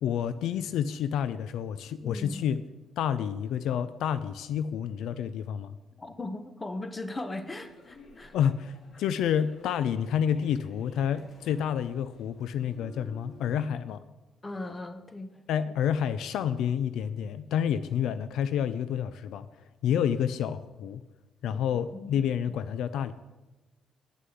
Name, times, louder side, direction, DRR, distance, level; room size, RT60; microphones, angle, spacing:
voice 1, 0.0-2.6 3.0-5.8 8.3-14.0 15.5-19.5 19.8-21.0 21.4-23.1, left 8 dB, 80° left, 13 dB, 0.4 m, -29 dB
voice 2, 2.0-2.4 6.0-8.3 14.4-15.3 21.5-21.6 21.9-22.1, left 2 dB, 25° left, 9 dB, 1.1 m, -38 dB
sound 1, 7.4-13.7, left 2 dB, 65° left, 1.8 m, -53 dB
9.2 x 6.6 x 7.8 m, 1.1 s
cardioid pair, 90°, 0 cm